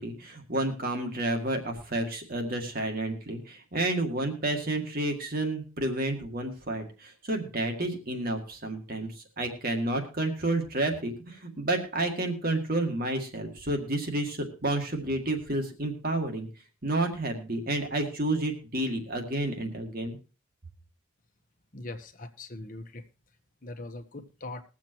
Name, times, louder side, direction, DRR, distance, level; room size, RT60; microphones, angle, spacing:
voice 1, 0.0-16.5 16.8-20.2, right 2 dB, 45° right, 4 dB, 1.9 m, -30 dB
voice 2, 21.7-23.1 23.6-24.6, left 2 dB, 40° left, 5 dB, 1.2 m, -41 dB
21.5 x 7.4 x 2.9 m, 0.35 s
head